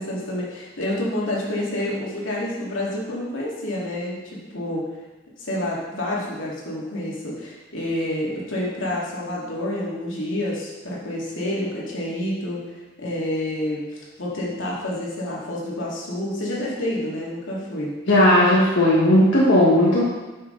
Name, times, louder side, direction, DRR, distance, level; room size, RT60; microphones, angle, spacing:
voice 1, 0.0-4.8 5.4-12.6 13.0-17.9, left 1 dB, 90° left, -5 dB, 2.3 m, -28 dB
voice 2, 18.1-20.0, left 1 dB, 70° left, -7 dB, 1.5 m, -16 dB
9.4 x 6.1 x 3.9 m, 1.2 s
head